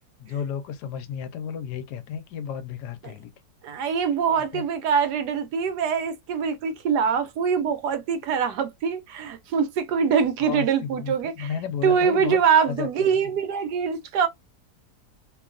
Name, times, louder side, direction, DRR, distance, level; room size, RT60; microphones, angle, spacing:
voice 1, 0.2-3.3 3.8-4.1 4.4-4.6 10.4-12.4 12.7-13.1, left 7 dB, 90° left, 1.2 m, -33 dB
voice 2, 3.6-11.5 11.8-14.3, right 7 dB, 90° right, 1.2 m, -24 dB
3.0 x 2.2 x 2.4 m
omnidirectional pair, 1.7 m